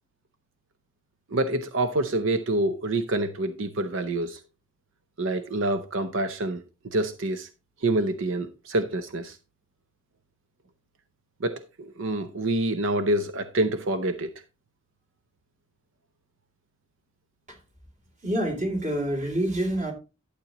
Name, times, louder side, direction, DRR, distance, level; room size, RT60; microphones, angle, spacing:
voice 1, 1.3-4.4 5.2-7.5 7.8-9.4 11.4-14.3, right 2 dB, 60° right, 0.7 m, -27 dB
voice 2, 18.2-19.9, right 1 dB, 35° right, 2.9 m, -27 dB
12.0 x 8.3 x 2.9 m
head